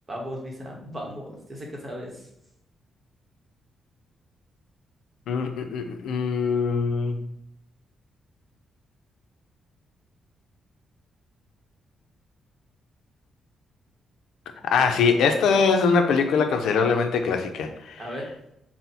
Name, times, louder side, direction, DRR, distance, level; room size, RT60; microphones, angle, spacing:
voice 1, 0.1-2.1 18.0-18.3, equal, 20° right, -1 dB, 0.9 m, -36 dB
voice 2, 5.3-7.3 14.7-18.0, left 5 dB, 80° left, 6 dB, 0.5 m, -22 dB
4.1 x 2.0 x 4.1 m, 0.80 s
cardioid pair, 160°, 0 cm